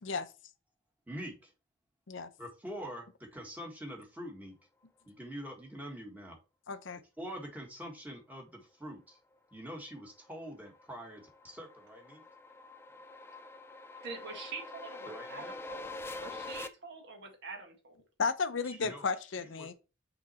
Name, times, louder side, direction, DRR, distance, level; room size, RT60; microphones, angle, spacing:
voice 1, 1.1-1.5 2.4-4.5 5.1-6.4 7.2-9.2 9.5-12.2 15.1-15.5 18.6-19.1 19.6-19.7, equal, 10° right, 1.5 m, -44 dB
voice 2, 6.7-7.0 18.2-19.7, left 4 dB, 65° left, 0.7 m, -33 dB
sound 1, 10.1-16.7, left 2 dB, 10° left, 0.4 m, -45 dB
voice 3, 14.0-15.9 16.2-18.0, right 4 dB, 60° right, 1.9 m, -45 dB
6.0 x 3.9 x 4.2 m
head